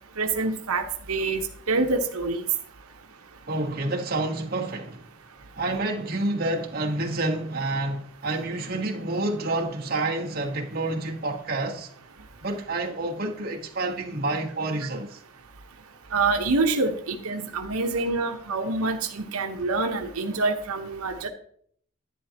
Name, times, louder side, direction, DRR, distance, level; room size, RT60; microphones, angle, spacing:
voice 1, 0.2-1.4 1.7-2.4 16.1-21.3, right 3 dB, 85° right, 1.0 m, -26 dB
voice 2, 3.5-5.1 5.6-11.9 12.4-15.2, right 2 dB, 45° right, 1.3 m, -28 dB
11.0 x 10.0 x 2.9 m
head